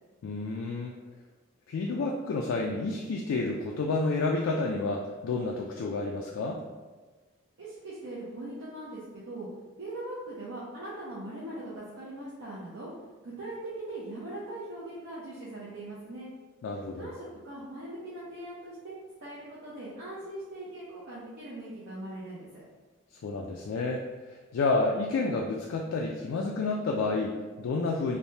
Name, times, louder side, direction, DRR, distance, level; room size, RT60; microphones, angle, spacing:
voice 1, 0.2-0.9 1.7-6.6 16.6-17.1 23.2-28.2, left 3 dB, 80° left, -1 dB, 0.3 m, -30 dB
voice 2, 7.6-9.5 9.8-12.9 13.2-16.3 17.0-22.6, right 1 dB, 70° right, -8 dB, 0.6 m, -40 dB
3.2 x 2.1 x 2.7 m, 1.3 s
head